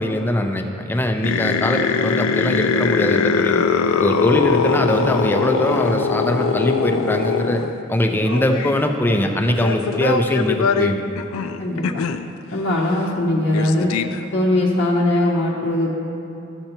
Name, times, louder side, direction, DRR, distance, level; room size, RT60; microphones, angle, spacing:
voice 1, 0.0-3.6 4.0-7.6 7.9-11.0, left 1 dB, 10° left, 4 dB, 0.5 m, -21 dB
sound 1, 1.2-7.7 8.2-8.8 9.5-12.2 12.8-12.9 13.1-13.2 13.5-14.2, left 5 dB, 80° left, 0.4 m, -21 dB
voice 2, 11.6-12.0 12.5-13.9 14.3-16.0, left 1 dB, 55° left, -5 dB, 0.8 m, -20 dB
13.5 x 6.6 x 2.9 m, 2.8 s
head